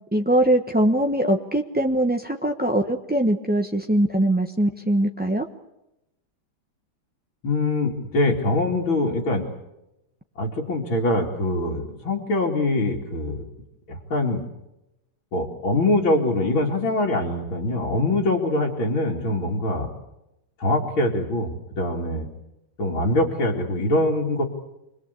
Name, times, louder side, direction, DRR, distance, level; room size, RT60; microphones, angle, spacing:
voice 1, 0.1-5.5, right 1 dB, 10° right, 2 dB, 0.6 m, -22 dB
voice 2, 7.4-9.4 10.4-13.4 13.9-14.4 15.3-19.9 20.6-22.3 22.8-24.4, left 2 dB, 80° left, -3 dB, 3.4 m, -23 dB
28.5 x 21.5 x 8.3 m, 0.91 s
omnidirectional pair, 2.2 m